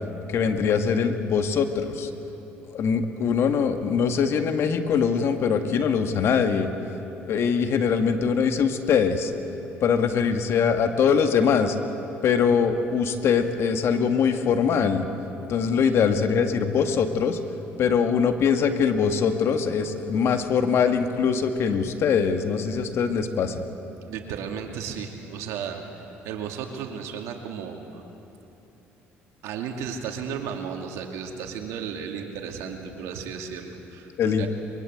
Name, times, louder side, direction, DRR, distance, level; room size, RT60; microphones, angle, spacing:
voice 1, 0.3-2.1 2.7-6.7 7.3-9.3 9.8-11.8 12.2-15.1 15.5-17.4 17.8-23.6 34.2-34.5, left 6 dB, 60° left, 6 dB, 1.9 m, -22 dB
voice 2, 24.1-25.8 26.2-28.0 29.4-34.1 34.4-34.5, right 7 dB, 80° right, 3 dB, 2.5 m, -34 dB
23.5 x 22.5 x 8.0 m, 3.0 s
supercardioid pair, 80°, 5 cm